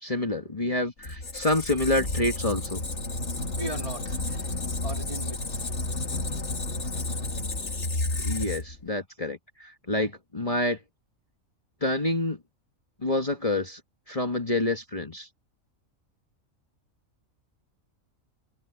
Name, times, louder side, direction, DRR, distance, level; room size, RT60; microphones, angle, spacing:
voice 1, 0.0-2.8 8.2-10.8 11.8-12.4 13.0-13.8 14.1-15.3, left 2 dB, 25° left, 1.8 m, -28 dB
Squeak, 1.0-8.9, left 2 dB, 60° left, 2.6 m, -31 dB
voice 2, 3.6-4.6 4.8-5.7, right 1 dB, 25° right, 2.4 m, -38 dB
omnidirectional pair, 1.4 m